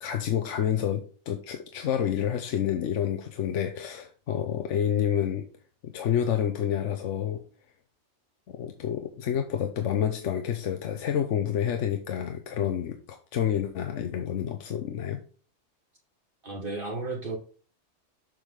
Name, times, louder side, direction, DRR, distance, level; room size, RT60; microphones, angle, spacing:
voice 1, 0.0-5.5 5.8-7.4 8.5-15.2, left 9 dB, 80° left, 5 dB, 1.1 m, -29 dB
voice 2, 16.4-17.4, right 3 dB, 45° right, 0 dB, 1.6 m, -33 dB
7.3 x 5.0 x 3.7 m, 0.40 s
omnidirectional pair, 1.2 m